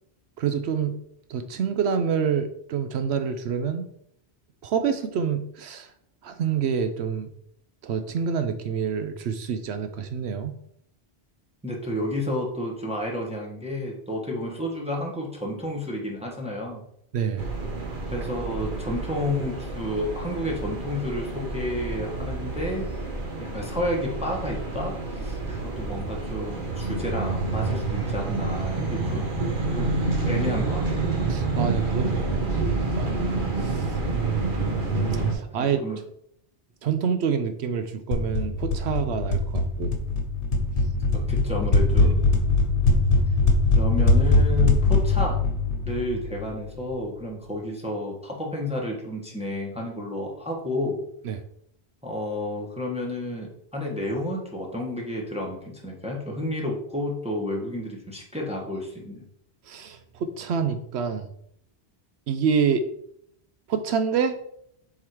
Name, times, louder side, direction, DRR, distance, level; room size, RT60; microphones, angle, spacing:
voice 1, 0.4-1.0 1.3-3.8 4.6-5.9 6.2-7.3 7.8-10.5 17.1-17.5 31.3-33.2 33.6-33.9 34.1-34.6 35.3-35.8 36.8-39.9 51.2-51.4 59.7-61.3 62.3-62.8 63.7-64.4, right 7 dB, 80° right, 8 dB, 0.9 m, -27 dB
voice 2, 11.6-16.8 18.1-22.9 23.4-29.3 29.8-29.9 30.2-31.2 35.5-36.0 41.1-42.2 43.7-45.4 45.8-51.0 52.0-59.2, left 1 dB, 5° right, -1 dB, 1.2 m, -31 dB
sound 1, 17.4-35.3, right 3 dB, 50° right, 1.2 m, -28 dB
sound 2, 38.1-46.8, left 2 dB, 55° left, 1.2 m, -21 dB
7.3 x 3.9 x 4.7 m, 0.71 s
omnidirectional pair, 1.1 m